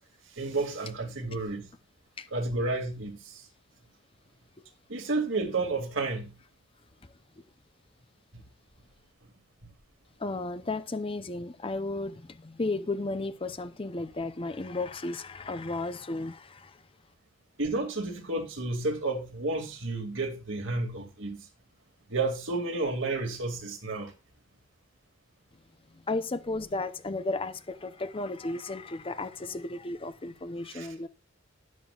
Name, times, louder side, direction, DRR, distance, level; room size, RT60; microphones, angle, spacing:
voice 1, 0.3-1.7 2.3-3.5 4.9-6.3 8.3-8.4 17.6-21.5 22.1-24.1 30.7-31.1, right 3 dB, 65° right, 2.4 m, -31 dB
voice 2, 10.2-16.8 25.9-31.1, left 2 dB, 25° left, 0.7 m, -34 dB
12.5 x 10.5 x 2.4 m
head